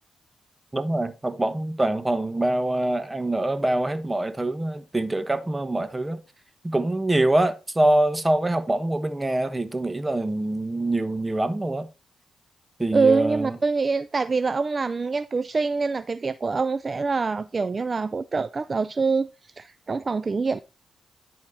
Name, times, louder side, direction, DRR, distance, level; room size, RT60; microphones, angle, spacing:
voice 1, 0.7-6.2 6.6-11.9 12.8-13.6, right 1 dB, 20° right, 1.2 m, -24 dB
voice 2, 12.9-20.6, right 4 dB, 45° right, 0.4 m, -25 dB
10.5 x 4.2 x 4.2 m
supercardioid pair, 45°, 0 cm